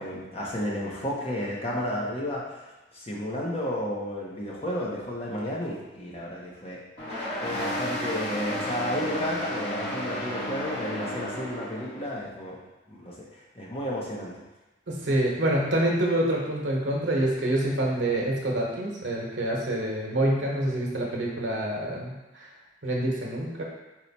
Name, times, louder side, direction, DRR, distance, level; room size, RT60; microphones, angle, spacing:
voice 1, 0.0-6.8 7.4-12.6 12.9-14.4, equal, 30° left, -4 dB, 0.8 m, -32 dB
sound 1, 7.0-12.1, equal, 60° left, 1.2 m, -32 dB
voice 2, 14.9-22.5 22.8-23.6, right 1 dB, 80° right, -2 dB, 0.9 m, -26 dB
4.5 x 2.3 x 4.1 m, 1.1 s
head